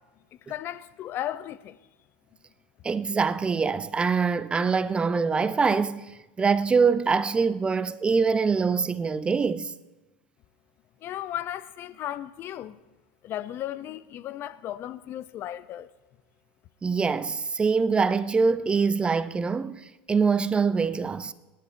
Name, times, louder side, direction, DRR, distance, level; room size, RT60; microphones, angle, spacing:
voice 1, 0.5-1.8 11.0-12.8 13.2-15.9, left 12 dB, 40° left, 0.5 m, -35 dB
voice 2, 2.8-9.7 16.8-21.3, right 5 dB, 20° right, 0.5 m, -24 dB
26.5 x 11.0 x 2.6 m
hypercardioid pair, 100°, 6 cm